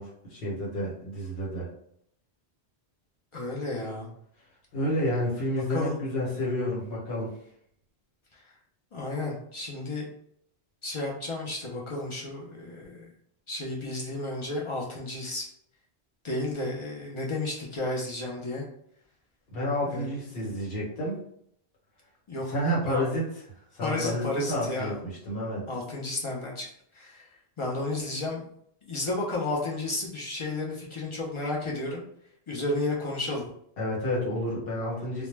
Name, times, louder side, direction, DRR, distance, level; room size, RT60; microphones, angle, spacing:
voice 1, 0.0-1.7 4.7-7.3 19.5-21.2 22.5-23.2 23.7-25.6 33.8-35.3, equal, 65° left, -4 dB, 1.0 m, -30 dB
voice 2, 3.3-4.1 5.7-5.9 8.9-10.1 10.8-13.1 13.5-15.5 16.2-18.6 19.8-20.1 22.3-22.5 22.9-23.0 23.8-25.0 25.7-26.6 26.9-27.2 27.6-28.4 28.9-32.0 32.5-33.5, left 2 dB, 45° left, -3 dB, 0.4 m, -32 dB
2.1 x 2.0 x 3.1 m, 0.69 s
omnidirectional pair, 1.1 m